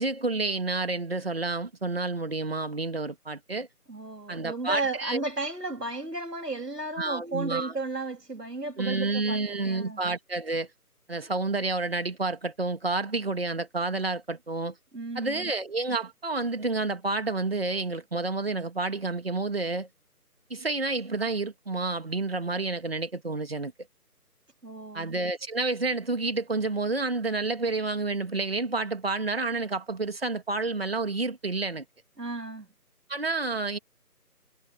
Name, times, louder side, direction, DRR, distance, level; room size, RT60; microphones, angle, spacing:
voice 1, 0.0-3.7 4.3-5.2 7.0-7.8 8.8-10.7 11.1-14.8 15.1-19.9 20.5-23.7 24.9-31.8 33.1-33.8, right 3 dB, 40° right, 2.5 m, -29 dB
voice 2, 3.9-10.0 14.9-15.5 24.6-25.1 32.2-32.7, right 2 dB, 90° right, 3.2 m, -34 dB
figure-of-eight pair, 170°, 47 cm